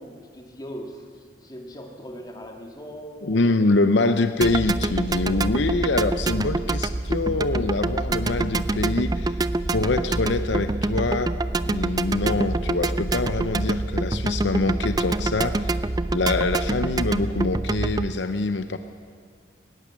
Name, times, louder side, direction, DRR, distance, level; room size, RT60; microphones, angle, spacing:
voice 1, 0.0-3.8, equal, 20° left, 2 dB, 2.2 m, -40 dB
voice 2, 3.2-9.4 9.7-11.3 11.7-15.8 16.1-18.8, left 3 dB, 70° left, 10 dB, 0.7 m, -24 dB
sound 1, 4.4-18.1, right 2 dB, 20° right, 0.4 m, -26 dB
19.5 x 18.0 x 7.6 m, 2.2 s
head